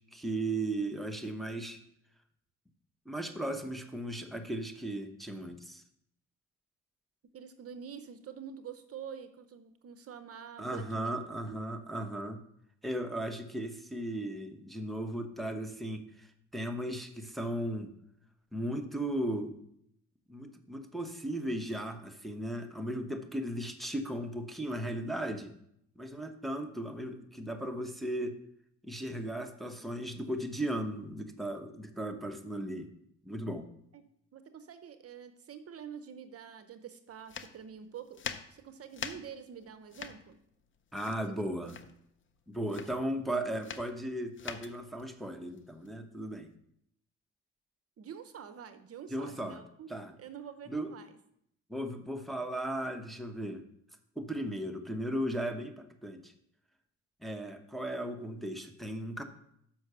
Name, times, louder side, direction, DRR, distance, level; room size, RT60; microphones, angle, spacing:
voice 1, 0.1-1.8 3.1-5.8 10.6-12.4 12.8-17.9 18.5-19.5 20.3-25.5 26.0-28.4 28.8-32.9 33.2-33.6 40.9-41.8 42.5-46.5 49.1-49.6 49.9-50.1 50.7-50.9 51.7-53.6 54.2-56.3 57.2-59.2, right 1 dB, ahead, 4 dB, 1.0 m, -36 dB
voice 2, 7.3-11.1 11.5-11.6 33.9-38.2 38.5-40.4 41.4-41.7 48.0-49.9 50.2-51.2, right 8 dB, 50° right, 10 dB, 0.7 m, -47 dB
sound 1, 37.2-46.5, left 7 dB, 40° left, 0.7 m, -45 dB
6.3 x 5.9 x 6.7 m, 0.73 s
cardioid pair, 90°, 30 cm